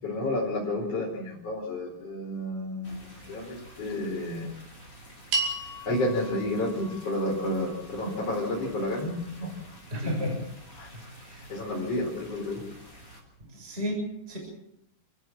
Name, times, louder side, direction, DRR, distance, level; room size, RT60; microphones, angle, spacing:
voice 1, 0.0-4.5 5.8-9.5 10.0-10.2 10.7-10.9 11.3-12.6, left 1 dB, 35° left, -3 dB, 5.2 m, -31 dB
sound 1, 2.8-13.2, right 1 dB, 10° left, 6.6 m, -50 dB
sound 2, 5.3-9.8, right 2 dB, 75° right, 8.0 m, -36 dB
voice 2, 9.9-10.5 10.9-11.4 11.9-12.0 13.4-14.4, equal, 10° right, 0 dB, 6.6 m, -33 dB
29.5 x 15.5 x 7.5 m, 0.82 s
omnidirectional pair, 5.4 m